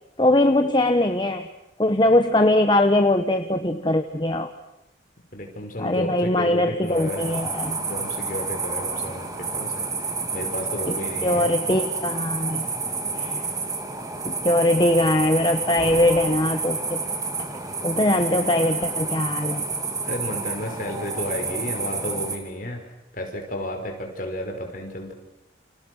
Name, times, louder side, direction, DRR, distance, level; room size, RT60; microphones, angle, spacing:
voice 1, 0.2-1.5 1.8-4.5 5.8-7.8 10.9-11.0 11.2-12.6 13.1-13.4 14.2-17.0 17.8-19.6, left 1 dB, 25° left, 7 dB, 1.1 m, -21 dB
voice 2, 5.3-9.9 10.3-11.5 20.0-25.1, left 1 dB, 45° left, 3 dB, 5.6 m, -32 dB
sound 1, 6.9-22.4, right 4 dB, 20° right, 2.9 m, -29 dB
29.5 x 28.0 x 6.4 m, 0.90 s
head